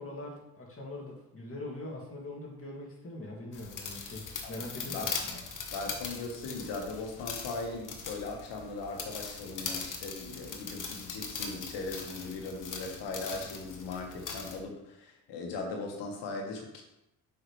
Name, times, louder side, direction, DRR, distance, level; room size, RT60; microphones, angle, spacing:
voice 1, 0.0-5.4, left 1 dB, 30° left, -2 dB, 2.3 m, -42 dB
sound 1, 3.5-14.6, left 5 dB, 50° left, 1.2 m, -40 dB
voice 2, 4.4-5.0 5.7-16.8, left 3 dB, 85° left, 2 dB, 1.5 m, -39 dB
7.4 x 5.7 x 3.2 m, 0.84 s
cardioid pair, 90°, 41 cm